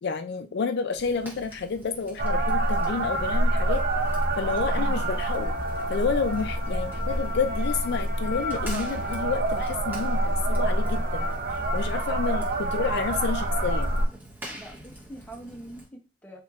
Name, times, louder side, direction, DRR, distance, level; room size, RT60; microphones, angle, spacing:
voice 1, 0.0-3.8 4.4-5.6 5.9-11.3 11.7-13.9, left 5 dB, 60° left, 7 dB, 0.4 m, -30 dB
Fire, 0.9-15.9, right 1 dB, 10° right, 1.1 m, -47 dB
sound 1, 2.2-14.1, right 1 dB, 50° right, 0.6 m, -26 dB
voice 2, 14.5-16.4, right 1 dB, 10° left, 0 dB, 0.7 m, -44 dB
4.2 x 2.9 x 2.4 m, 0.29 s
head